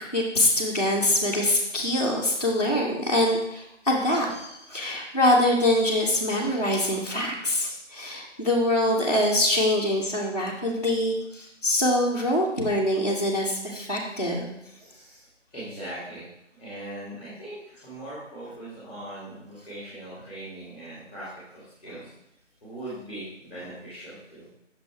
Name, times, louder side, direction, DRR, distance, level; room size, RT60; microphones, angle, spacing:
voice 1, 0.0-14.6 21.9-22.0, left 1 dB, 35° left, -5 dB, 0.6 m, -24 dB
voice 2, 14.8-15.3 15.5-16.2 16.6-21.3 21.5-22.0 22.6-24.5, right 1 dB, 10° left, -9 dB, 1.4 m, -40 dB
6.0 x 3.7 x 4.4 m, 0.81 s
figure-of-eight pair, 170°, 37 cm